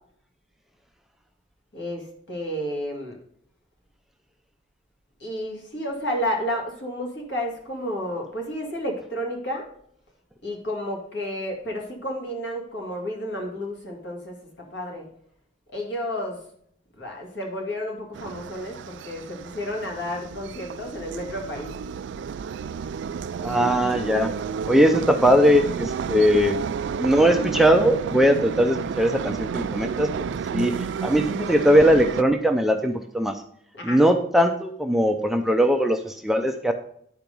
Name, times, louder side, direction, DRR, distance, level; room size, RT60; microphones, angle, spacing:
voice 1, 1.7-3.2 5.2-9.7 10.4-15.1 15.7-16.4 17.0-21.7 33.7-34.0, equal, 60° left, 1 dB, 2.3 m, -31 dB
sound 1, 18.1-32.2, right 6 dB, 70° right, 0.3 m, -31 dB
voice 2, 23.4-24.3 24.7-26.6 27.0-30.1 30.5-33.4 33.8-36.7, equal, ahead, 5 dB, 0.4 m, -20 dB
10.5 x 4.6 x 5.3 m, 0.68 s
head